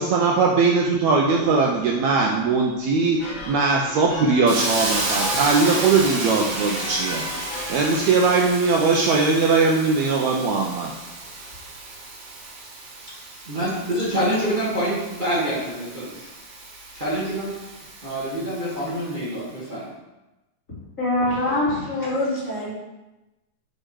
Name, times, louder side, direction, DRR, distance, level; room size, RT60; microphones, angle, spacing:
voice 1, 0.0-7.2 7.7-10.9, right 4 dB, 80° right, 0 dB, 1.7 m, -20 dB
sound 1, 3.2-8.6, left 2 dB, 75° left, 2.9 m, -35 dB
Hiss, 4.5-19.2, right 2 dB, 55° right, 2.2 m, -33 dB
voice 2, 13.4-16.0 16.9-17.5 18.0-19.9, equal, 30° right, -8 dB, 0.9 m, -26 dB
voice 3, 21.0-22.7, left 1 dB, 25° left, -9 dB, 3.0 m, -24 dB
6.6 x 4.9 x 4.7 m, 1.0 s
omnidirectional pair, 3.8 m